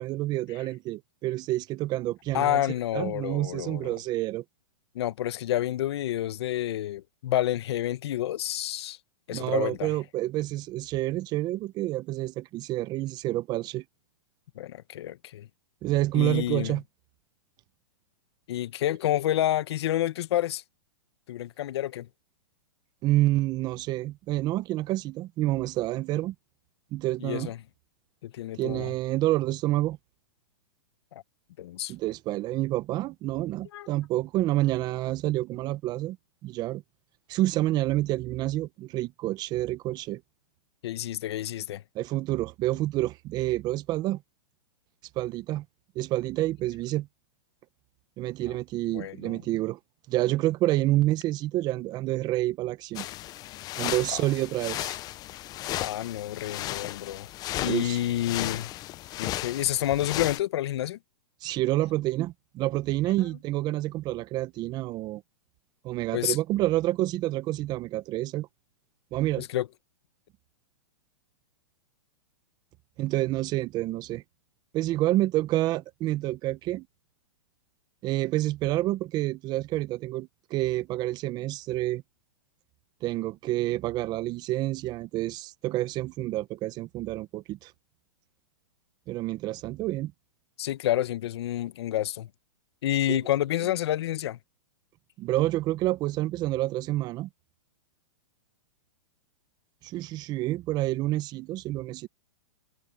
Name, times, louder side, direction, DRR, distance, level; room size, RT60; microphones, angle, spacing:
voice 1, 0.0-2.7 2.9-4.4 9.3-13.8 15.8-16.8 23.0-26.3 26.9-27.5 28.5-30.0 31.9-36.2 36.4-36.8 37.3-40.2 41.9-44.2 45.2-45.6 46.0-47.1 48.2-49.8 50.1-53.1 53.8-55.0 57.6-58.0 61.4-65.2 65.8-68.5 69.1-69.5 73.0-74.2 74.7-76.9 78.0-82.0 83.0-87.7 89.1-90.1 93.1-93.2 95.2-97.3 99.8-102.1, right 16 dB, 25° right, 0.8 m, -28 dB
voice 2, 2.3-3.9 4.9-9.0 9.3-9.9 14.6-15.5 16.1-16.8 18.5-20.6 21.3-22.1 27.2-27.6 28.2-28.9 31.1-31.2 31.6-31.9 33.7-33.9 40.8-41.8 48.5-48.6 48.9-49.4 54.1-54.2 55.8-57.3 57.6-58.7 59.2-61.0 66.1-66.4 69.4-69.7 90.6-92.3 92.8-94.4, left 13 dB, 60° left, 1.2 m, -29 dB
sound 1, 53.0-60.4, left 15 dB, 25° left, 0.7 m, -35 dB
hypercardioid pair, 140°, 15 cm